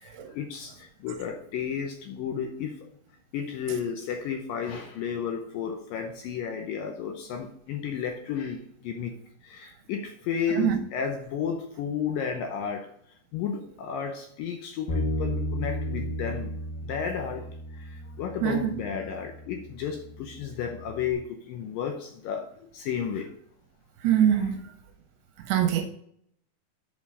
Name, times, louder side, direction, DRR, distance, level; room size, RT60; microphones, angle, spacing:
voice 1, 0.0-2.7 3.3-9.1 9.4-12.9 13.3-17.5 17.8-23.3 24.3-24.5, left 7 dB, 75° left, 2.1 m, -33 dB
Bass guitar, 14.9-21.1, equal, 60° left, 3.1 m, -34 dB
voice 2, 18.4-18.7 24.0-24.5 25.5-25.9, right 9 dB, 75° right, 2.7 m, -23 dB
8.1 x 5.3 x 5.4 m
omnidirectional pair, 4.9 m